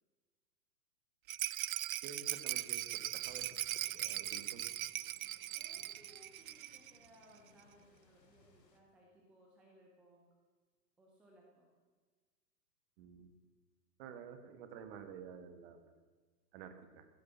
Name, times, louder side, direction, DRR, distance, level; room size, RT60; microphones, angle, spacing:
Rattle, 1.3-7.0 7.2-7.3 7.6-7.7, right 13 dB, 55° right, 0.5 m, -40 dB
voice 1, 2.0-3.5 3.9-4.6 13.0-13.3 14.0-15.9 16.5-17.1, right 7 dB, 35° right, 9 dB, 1.8 m, -51 dB
sound 1, 3.2-8.8, left 4 dB, 80° left, 2.3 m, -67 dB
voice 2, 5.5-10.3 11.0-11.7, right 1 dB, ahead, -1 dB, 0.4 m, -64 dB
15.5 x 10.0 x 7.4 m, 1.4 s
figure-of-eight pair, 115°, 50 cm